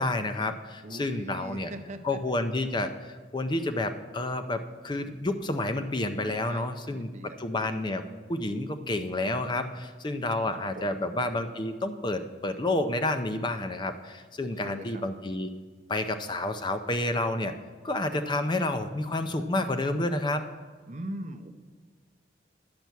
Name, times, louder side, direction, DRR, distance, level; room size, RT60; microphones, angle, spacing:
voice 1, 0.0-1.7 2.0-7.1 7.4-8.0 8.3-15.5 15.9-17.5 17.8-20.5, left 2 dB, 25° left, 9 dB, 0.5 m, -30 dB
voice 2, 0.8-2.4 6.4-7.4 10.3-11.1 14.5-15.0 20.9-21.5, right 1 dB, 40° right, 8 dB, 0.7 m, -41 dB
10.5 x 6.0 x 8.1 m, 1.4 s
head